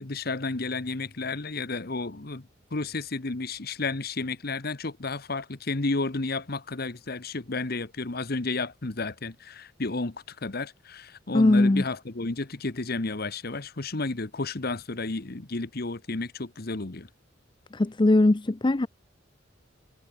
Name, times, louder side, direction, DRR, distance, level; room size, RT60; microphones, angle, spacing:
voice 1, 0.0-2.4 2.7-17.1, left 3 dB, 50° left, 1.2 m, -32 dB
voice 2, 11.3-11.8 17.7-18.9, left 2 dB, 25° left, 0.5 m, -20 dB
head